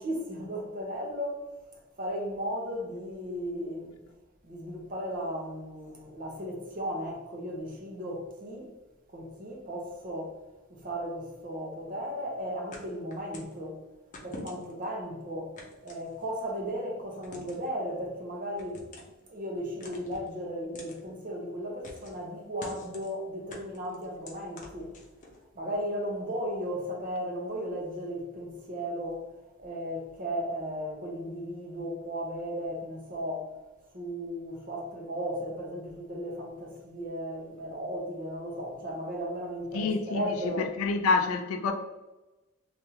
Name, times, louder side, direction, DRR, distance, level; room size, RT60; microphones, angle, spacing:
voice 1, 0.0-1.4 2.0-3.9 4.4-8.7 9.1-10.4 10.7-13.8 14.2-15.6 15.8-18.8 19.3-25.0 25.5-29.3 29.6-33.5 33.9-40.7 41.7-41.8, equal, 40° right, 0.7 m, -35 dB
sound 1, 12.7-13.6 14.1-14.8 15.6-16.5 17.2-17.7 18.6-19.2 19.8-20.3 20.7-21.0 21.8-22.2 22.6-23.1 23.5-25.4, left 2 dB, 40° left, 0.7 m, -46 dB
voice 2, 39.7-41.7, left 4 dB, 90° left, 0.3 m, -28 dB
3.4 x 2.4 x 2.8 m
head